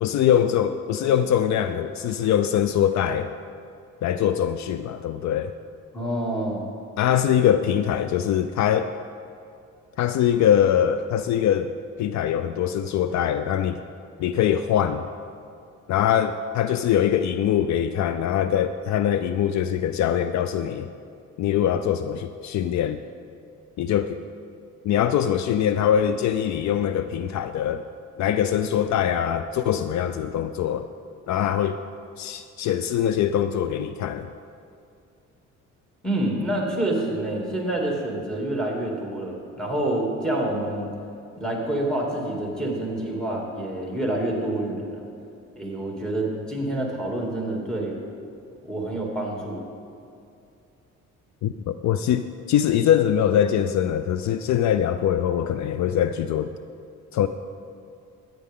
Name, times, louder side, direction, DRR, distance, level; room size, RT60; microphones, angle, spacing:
voice 1, 0.0-3.3 4.0-5.5 7.0-8.9 10.0-11.7 12.0-13.8 14.2-15.0 15.9-20.9 21.4-23.0 23.8-24.2 24.8-27.8 28.2-30.9 31.3-31.8 32.2-34.3 51.4-56.5 57.1-57.3, left 9 dB, 65° left, 11 dB, 0.5 m, -23 dB
voice 2, 5.9-6.6 36.0-40.9 41.4-45.1 45.6-47.9 48.6-49.6, right 1 dB, ahead, -2 dB, 2.7 m, -27 dB
14.0 x 9.4 x 3.7 m, 2.5 s
cardioid pair, 90°, 30 cm